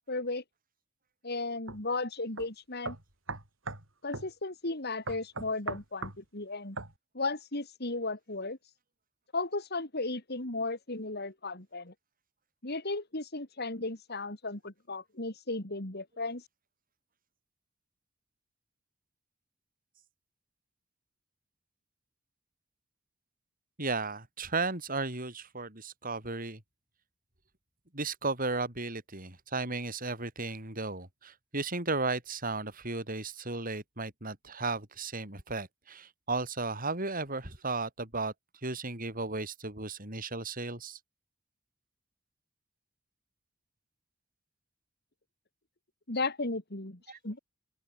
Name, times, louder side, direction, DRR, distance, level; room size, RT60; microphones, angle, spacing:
voice 1, 0.1-0.4 1.2-3.0 4.0-6.8 7.1-8.6 9.3-11.9 12.6-16.4 46.1-47.4, left 3 dB, 55° left, 3.4 m, -35 dB
sound 1, 1.7-1.8 2.4-2.5 2.8-3.9 4.1-4.3 5.1-6.2 6.8-6.9, right 3 dB, 75° right, 6.1 m, -38 dB
voice 2, 23.8-26.6 27.9-38.3 38.6-41.0, right 3 dB, 45° right, 6.8 m, -35 dB
open air
head